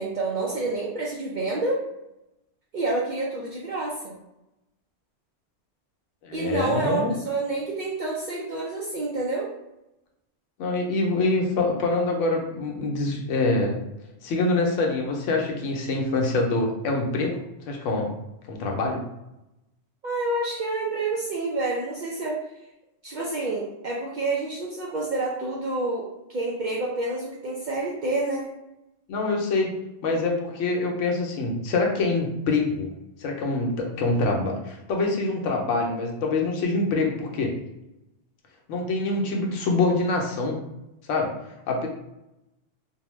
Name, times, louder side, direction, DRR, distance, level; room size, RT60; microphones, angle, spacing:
voice 1, 0.0-1.8 2.7-4.2 6.3-9.5 20.0-22.4 23.0-28.5, right 2 dB, 60° right, -4 dB, 0.5 m, -28 dB
voice 2, 6.2-7.1 10.6-13.8 14.2-17.4 17.7-18.1 18.5-19.0 29.1-29.7 30.0-32.9 33.2-37.5 38.7-40.6 41.1-41.3 41.7-41.9, left 3 dB, 85° left, 1 dB, 1.0 m, -25 dB
2.7 x 2.1 x 3.0 m, 0.90 s
omnidirectional pair, 1.2 m